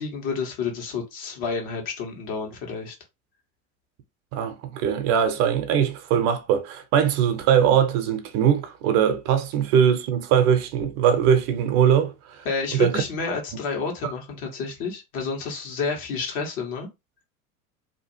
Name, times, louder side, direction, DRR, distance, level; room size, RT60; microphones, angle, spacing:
voice 1, 0.0-2.9 12.4-16.9, left 5 dB, 55° left, 1.4 m, -30 dB
voice 2, 4.3-12.4 12.8-13.0 14.0-14.1, right 8 dB, 50° right, 0.7 m, -21 dB
2.8 x 2.5 x 2.8 m
hypercardioid pair, 80°, 44 cm